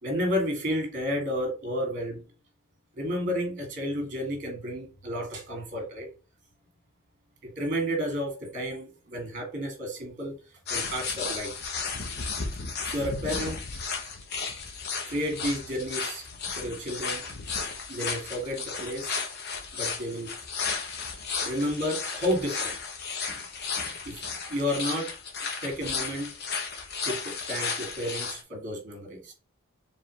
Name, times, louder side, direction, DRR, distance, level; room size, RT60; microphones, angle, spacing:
voice 1, 0.0-2.2 3.0-6.1 7.4-10.4 10.7-11.5 12.9-13.6 15.1-16.2 16.6-17.2 17.9-19.2 19.7-20.3 21.4-22.7 23.3-23.4 23.8-25.1 25.6-26.3 27.0-29.3, equal, 40° right, 1.8 m, -31 dB
sound 1, 10.7-28.4, left 5 dB, 50° left, 0.8 m, -34 dB
4.7 x 3.4 x 3.1 m
head